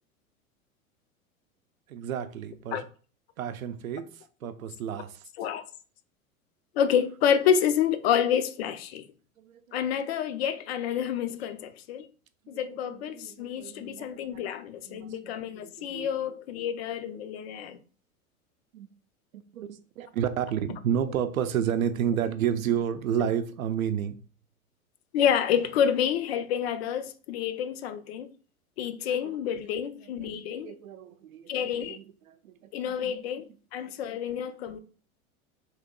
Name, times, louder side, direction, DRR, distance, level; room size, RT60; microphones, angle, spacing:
voice 1, 1.9-2.8 3.4-4.1 4.4-5.1 9.4-9.8 12.6-14.1 14.8-15.3 15.6-16.1 18.7-18.9 19.5-24.2 29.0-29.3 30.2-30.3 30.6-32.5 32.9-33.1, right 9 dB, 70° right, 0.6 m, -31 dB
voice 2, 6.7-9.1 9.7-12.1 12.5-17.8 25.1-28.3 28.8-30.7 31.5-32.0 32.7-33.5 33.7-34.8, left 8 dB, 50° left, 0.4 m, -28 dB
3.1 x 2.8 x 3.7 m
figure-of-eight pair, 90°, 43 cm